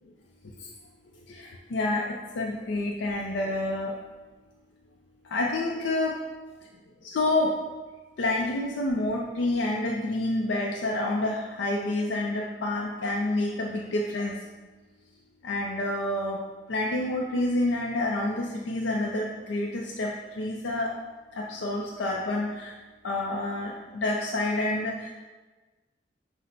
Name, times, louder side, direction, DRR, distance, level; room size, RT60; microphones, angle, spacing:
voice 1, 1.3-3.9 5.3-6.2 7.0-7.6 8.2-14.4 15.4-16.4 16.7-21.0 21.4-22.7 23.0-25.1, left 2 dB, 85° left, -1 dB, 0.4 m, -28 dB
5.7 x 2.1 x 3.9 m, 1.3 s
head